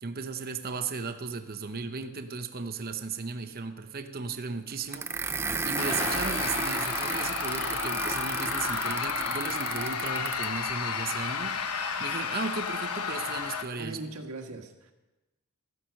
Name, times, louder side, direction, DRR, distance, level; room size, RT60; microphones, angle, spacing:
voice 1, 0.0-5.1 5.6-11.6 12.0-14.0, right 4 dB, 40° right, 8 dB, 0.8 m, -36 dB
sound 1, 4.9-10.6, right 4 dB, 10° right, 0.4 m, -33 dB
sound 2, 5.8-13.6, left 6 dB, 80° left, 1.0 m, -32 dB
voice 2, 13.8-14.9, right 2 dB, 75° right, 4 dB, 1.6 m, -40 dB
14.0 x 10.0 x 6.4 m, 1.1 s
head